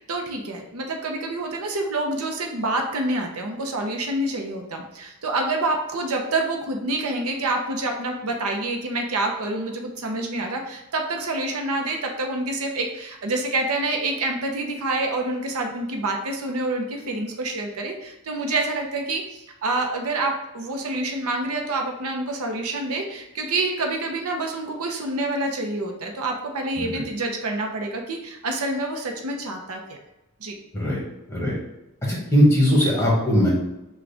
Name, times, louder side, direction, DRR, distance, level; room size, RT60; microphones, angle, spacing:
voice 1, 0.0-30.0 30.4-30.6, right 2 dB, 80° right, 3 dB, 0.7 m, -27 dB
voice 2, 32.1-33.5, equal, 10° left, -5 dB, 1.3 m, -19 dB
6.1 x 2.4 x 3.4 m, 0.96 s
head